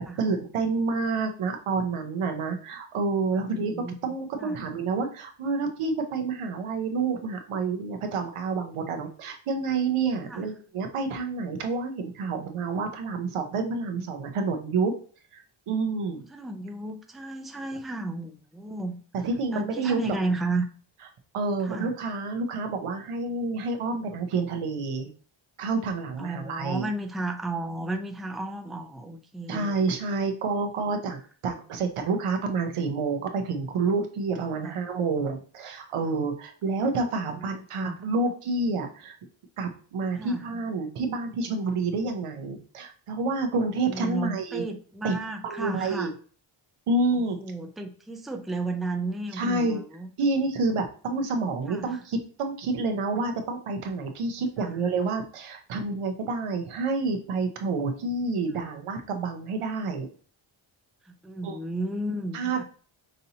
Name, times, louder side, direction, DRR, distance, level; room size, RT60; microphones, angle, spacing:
voice 1, 0.0-14.9 15.3-16.2 19.2-20.0 21.3-25.1 25.6-26.9 29.5-39.2 39.6-44.6 45.0-45.2 45.4-46.1 46.9-47.4 49.3-49.8 50.2-60.1 61.4-61.6 62.3-62.6, right 3 dB, 85° right, 4 dB, 0.9 m, -28 dB
voice 2, 3.3-3.9 4.4-4.6 10.3-10.5 16.1-19.0 19.5-20.7 21.6-21.9 26.2-29.8 34.6-34.8 36.7-36.8 37.3-37.4 37.8-38.0 40.1-40.5 43.8-46.1 47.4-50.1 51.7-52.0 54.6-54.8 58.6-58.7 61.1-62.6, right 2 dB, ahead, 4 dB, 0.4 m, -33 dB
5.3 x 2.7 x 2.8 m, 0.42 s
wide cardioid pair, 95°, 50 cm